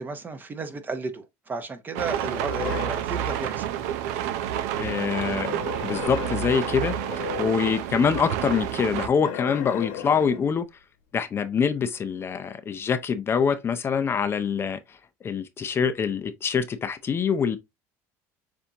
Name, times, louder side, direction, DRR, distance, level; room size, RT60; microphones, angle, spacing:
voice 1, 0.0-3.8, right 4 dB, 25° right, 0.8 m, -34 dB
sound 1, 1.9-9.1, right 10 dB, 85° right, 0.5 m, -29 dB
sound 2, 2.2-3.1 5.3-7.8 9.2-10.5, left 10 dB, 90° left, 1.2 m, -36 dB
voice 2, 4.8-10.6 11.1-17.6, left 6 dB, 30° left, 0.5 m, -25 dB
6.9 x 2.6 x 2.8 m
supercardioid pair, 115°, 8 cm